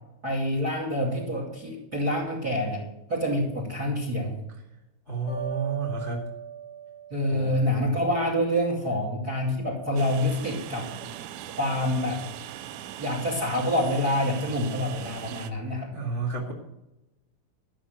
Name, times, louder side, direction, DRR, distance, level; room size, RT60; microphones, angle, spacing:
voice 1, 0.2-4.3 7.1-10.9 11.5-12.2 13.0-15.9, left 1 dB, 40° right, 0 dB, 1.4 m, -27 dB
voice 2, 5.1-6.2 7.3-7.6 15.9-16.5, right 4 dB, 75° left, -2 dB, 0.6 m, -31 dB
sound 1, 5.3-8.4, right 7 dB, 55° left, 8.5 m, -39 dB
Train, 10.0-15.5, right 11 dB, 80° right, 3.0 m, -40 dB
14.0 x 6.4 x 8.9 m, 0.94 s
omnidirectional pair, 6.0 m